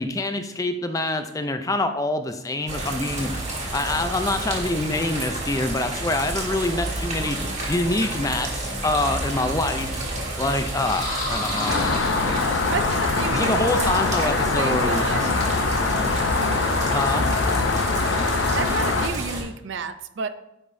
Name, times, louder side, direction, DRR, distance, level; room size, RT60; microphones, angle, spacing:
voice 1, 0.0-3.3 3.7-7.4 7.7-10.0 10.4-11.8 13.3-15.0 16.9-17.3, left 2 dB, 15° left, 8 dB, 0.4 m, -25 dB
sound 1, 2.7-19.4, right 1 dB, 35° right, 1.6 m, -30 dB
sound 2, 10.7-13.0, left 1 dB, 40° left, 1.9 m, -30 dB
voice 2, 11.3-11.8 12.7-15.3 16.3-16.6 18.5-20.3, right 5 dB, 65° right, 12 dB, 0.4 m, -32 dB
Rain, 11.7-19.1, left 4 dB, 70° left, 0.6 m, -23 dB
9.7 x 5.1 x 2.6 m, 0.85 s
head